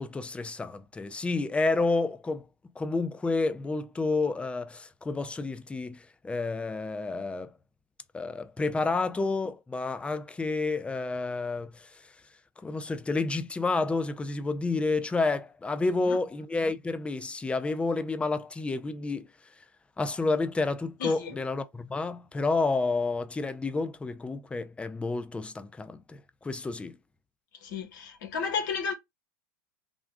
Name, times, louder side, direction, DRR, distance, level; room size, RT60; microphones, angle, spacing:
voice 1, 0.0-2.4 2.8-7.5 8.1-11.9 12.6-19.3 20.0-27.0, left 3 dB, 10° left, 0.5 m, -30 dB
voice 2, 21.0-21.3 27.7-28.9, left 6 dB, 70° left, 1.4 m, -32 dB
3.6 x 2.3 x 3.4 m
hypercardioid pair, 105°, 11 cm